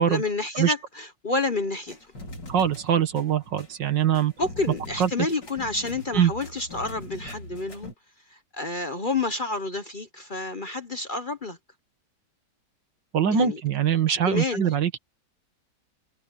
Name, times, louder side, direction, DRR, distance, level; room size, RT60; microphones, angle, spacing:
voice 1, 0.1-2.0 4.4-7.9 8.3-11.6 13.3-13.6 14.1-14.7, left 3 dB, 35° left, 1.0 m, -29 dB
sound 1, 1.9-7.9, left 1 dB, 80° left, 5.7 m, -42 dB
voice 2, 2.5-4.3 5.0-5.1 6.1-6.3 13.1-15.0, right 8 dB, 85° right, 2.2 m, -23 dB
omnidirectional pair, 1.9 m